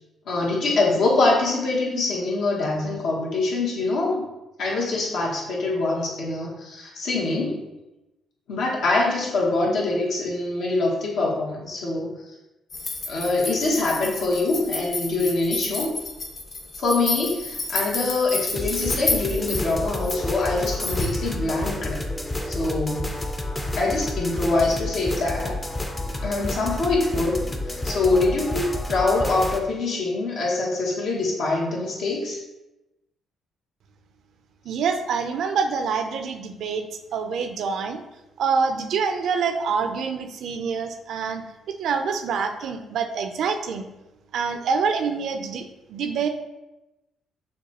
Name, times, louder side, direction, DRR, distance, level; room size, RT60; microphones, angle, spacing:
voice 1, 0.3-4.3 4.6-7.6 8.5-12.1 13.1-16.0 16.8-22.0 22.4-23.1 23.8-25.6 26.1-27.4 27.7-32.4, left 2 dB, 70° left, -3 dB, 1.2 m, -24 dB
sound 1, 12.7-21.2, left 3 dB, 50° left, 0.9 m, -30 dB
sound 2, 18.6-29.6, left 1 dB, 20° left, 0.6 m, -30 dB
voice 2, 34.6-36.9 37.1-38.0 38.4-41.4 41.8-43.9 44.3-46.3, right 5 dB, 75° right, 7 dB, 0.5 m, -26 dB
6.5 x 2.3 x 3.0 m, 0.98 s
cardioid pair, 90°, 0 cm